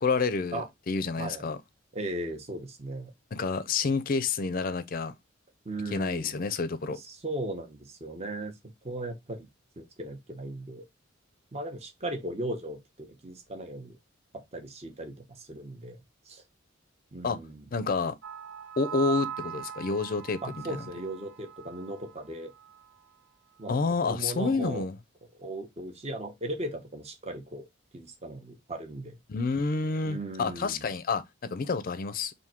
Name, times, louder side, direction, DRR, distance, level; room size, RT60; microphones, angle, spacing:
voice 1, 0.0-1.6 3.3-5.1 5.9-7.0 17.2-17.4 17.7-18.2 18.8-20.4 20.7-20.8 23.7-24.9 29.3-32.3, left 4 dB, 45° left, 0.5 m, -29 dB
voice 2, 1.9-3.1 5.6-6.3 6.9-8.5 8.8-9.5 9.8-10.9 11.5-14.0 14.3-16.0 16.3-16.4 17.1-17.7 20.4-22.5 23.6-24.8 25.4-27.7 27.9-29.1 30.0-30.9, right 1 dB, 30° right, 0.8 m, -37 dB
sound 1, 18.2-22.3 22.6-22.8, right 8 dB, 60° right, 0.5 m, -40 dB
3.6 x 2.6 x 4.3 m
head